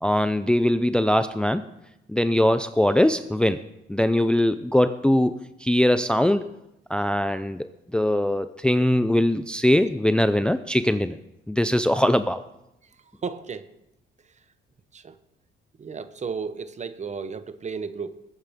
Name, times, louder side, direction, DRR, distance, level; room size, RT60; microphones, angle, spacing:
voice 1, 0.0-1.6 2.1-3.6 3.9-6.4 6.9-7.7 7.9-11.2 11.5-12.4, left 1 dB, 5° left, 11 dB, 0.5 m, -21 dB
voice 2, 12.8-13.7 14.2-14.4 14.9-15.2 15.8-18.2, right 5 dB, 35° right, 12 dB, 1.0 m, -34 dB
20.5 x 9.5 x 3.7 m, 0.87 s
cardioid pair, 90°, 20 cm